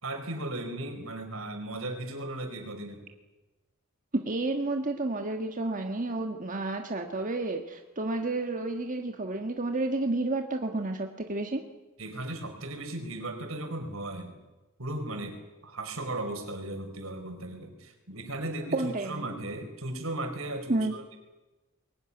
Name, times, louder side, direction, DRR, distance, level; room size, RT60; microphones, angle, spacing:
voice 1, 0.0-3.0 12.0-14.4 14.8-21.2, right 1 dB, 80° right, 5 dB, 4.7 m, -36 dB
voice 2, 4.1-11.6 18.7-19.2 20.7-20.9, right 2 dB, 40° right, 4 dB, 1.5 m, -30 dB
22.0 x 18.0 x 9.9 m, 1.1 s
head